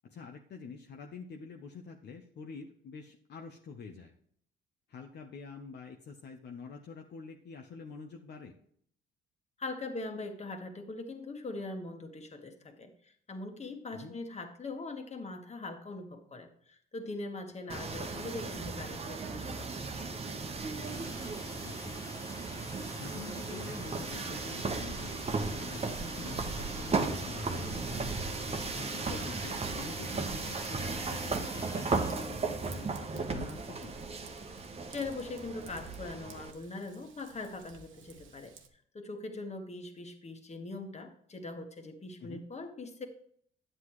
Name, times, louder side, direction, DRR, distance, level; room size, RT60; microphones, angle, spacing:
voice 1, 0.0-4.1 4.9-8.5 13.9-14.2 17.6-17.8 21.6-22.0 23.0-28.1 28.7-33.9 42.2-42.5, left 5 dB, 60° left, 2 dB, 0.9 m, -47 dB
voice 2, 9.6-12.9 13.3-19.9 34.9-38.5 38.9-43.1, left 2 dB, 35° left, 5 dB, 1.6 m, -41 dB
sound 1, 17.7-36.5, right 3 dB, 30° right, 1.0 m, -36 dB
sound 2, 20.8-32.2, left 2 dB, 15° left, 0.7 m, -50 dB
Raindrop / Vehicle horn car horn honking / Trickle dribble, 28.1-38.7, right 6 dB, 80° right, 1.2 m, -55 dB
9.9 x 7.9 x 3.1 m, 0.65 s
cardioid pair, 90°, 20 cm